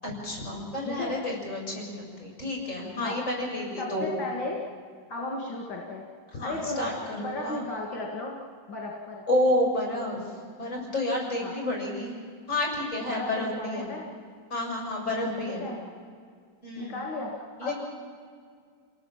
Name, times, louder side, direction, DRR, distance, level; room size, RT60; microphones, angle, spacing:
voice 1, 0.0-4.1 6.4-7.7 9.3-10.2 10.6-12.2 12.5-13.9 14.5-15.7 16.6-17.0 17.6-17.7, left 1 dB, 40° left, -1 dB, 7.3 m, -30 dB
voice 2, 3.8-4.6 5.1-6.0 6.4-8.4 8.7-9.2 11.4-11.5 13.1-14.1 15.6-15.8 16.8-17.7, left 2 dB, 75° left, -1 dB, 3.0 m, -34 dB
28.5 x 18.5 x 7.5 m, 2.1 s
omnidirectional pair, 2.0 m